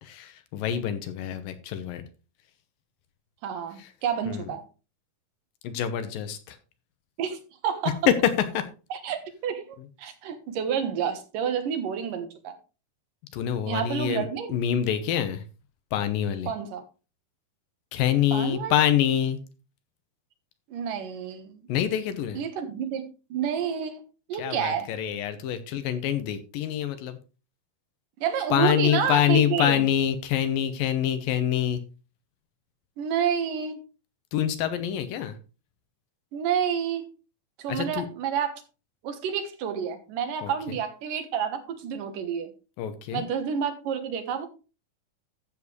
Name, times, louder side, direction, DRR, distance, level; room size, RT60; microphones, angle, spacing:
voice 1, 0.0-2.0 3.8-3.9 4.3-4.5 5.6-6.6 7.9-8.7 13.3-15.4 15.9-16.5 17.9-19.4 21.7-22.4 24.4-27.2 28.5-31.8 34.3-35.4 37.7-38.1 40.4-40.8 42.8-43.2, left 10 dB, 85° left, 10 dB, 2.7 m, -26 dB
voice 2, 3.4-4.6 7.2-8.0 8.9-12.6 13.7-14.5 16.5-16.8 18.3-18.8 20.7-21.7 22.3-23.0 23.3-24.0 24.3-24.9 28.2-29.9 33.0-33.8 36.3-37.1 37.6-38.6 39.0-42.5 43.1-44.5, right 8 dB, 75° right, 7 dB, 2.9 m, -29 dB
13.5 x 7.4 x 3.2 m, 0.32 s
omnidirectional pair, 4.0 m